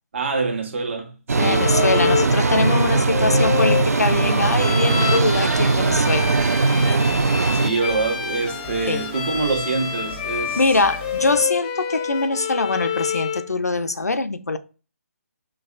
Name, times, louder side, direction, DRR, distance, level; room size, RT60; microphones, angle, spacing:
voice 1, 0.1-1.6 7.5-10.6, right 3 dB, 50° right, 1.1 m, -25 dB
sound 1, 1.3-7.7, right 4 dB, 75° right, 0.4 m, -19 dB
voice 2, 1.4-6.4 8.9-9.0 10.6-14.6, left 3 dB, 90° left, 0.4 m, -23 dB
Bowed string instrument, 1.4-13.5, left 8 dB, 25° left, 0.4 m, -28 dB
sound 2, 3.5-11.4, right 1 dB, 10° right, 0.7 m, -38 dB
5.3 x 2.3 x 2.4 m
figure-of-eight pair, 145°, 8 cm